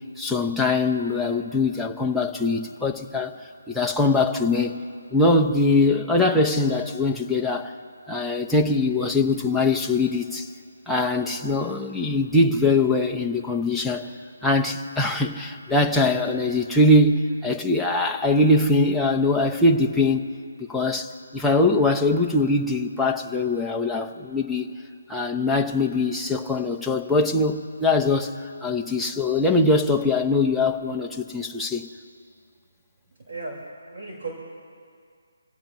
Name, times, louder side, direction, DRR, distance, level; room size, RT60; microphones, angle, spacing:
voice 1, 0.2-4.8 5.1-7.7 8.1-10.5 10.9-14.1 14.4-20.2 20.7-24.7 25.1-31.9, left 2 dB, ahead, -1 dB, 0.8 m, -22 dB
voice 2, 33.3-34.3, right 3 dB, 55° right, -3 dB, 4.1 m, -35 dB
28.0 x 16.0 x 3.1 m, 2.2 s
hypercardioid pair, 170°, 0 cm